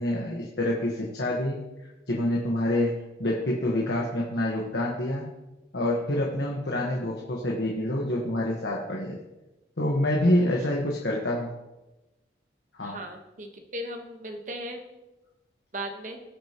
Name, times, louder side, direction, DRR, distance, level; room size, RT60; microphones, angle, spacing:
voice 1, 0.0-1.6 2.1-5.3 5.7-9.2 9.8-11.5 12.8-13.0, left 1 dB, 80° left, -2 dB, 1.3 m, -27 dB
voice 2, 12.8-14.8 15.7-16.2, right 1 dB, 45° right, 4 dB, 1.2 m, -37 dB
18.5 x 6.4 x 3.0 m, 1.0 s
head